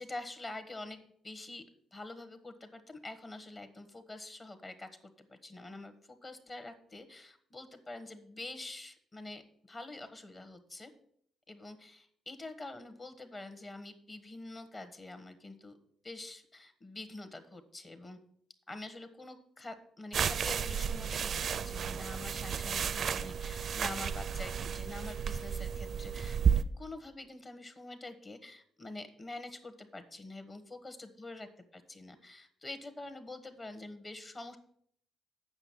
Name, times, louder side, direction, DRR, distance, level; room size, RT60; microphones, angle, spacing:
voice 1, 0.0-1.6 1.9-4.9 5.3-9.4 9.7-10.9 11.5-15.8 16.0-18.2 18.7-34.6, left 2 dB, 30° left, 10 dB, 1.3 m, -46 dB
sound 1, 20.1-26.6, right 7 dB, 55° right, 0.4 m, -33 dB
8.0 x 6.0 x 7.3 m, 0.66 s
cardioid pair, 90°, 0 cm